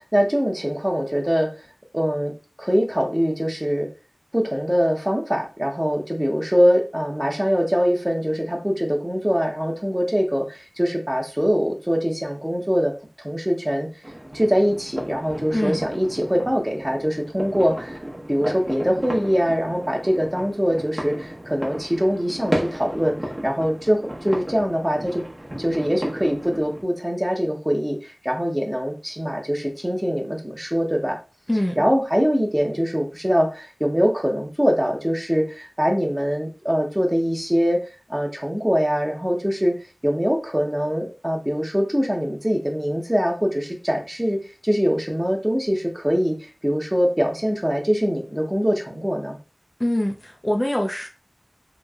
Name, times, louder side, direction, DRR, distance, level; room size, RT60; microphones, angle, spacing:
voice 1, 0.0-1.5 1.9-2.3 2.6-3.9 4.3-12.9 13.2-13.9 14.3-18.0 18.3-25.2 25.6-31.2 31.8-37.8 38.1-39.7 40.0-49.4, equal, 15° right, 1 dB, 0.9 m, -23 dB
sound 1, 14.0-26.8, equal, 35° right, 1.0 m, -33 dB
voice 2, 15.5-15.9 31.5-31.8 49.8-51.1, left 1 dB, 30° left, 2 dB, 0.5 m, -24 dB
3.1 x 3.0 x 2.4 m, 0.32 s
wide cardioid pair, 40°, 0 cm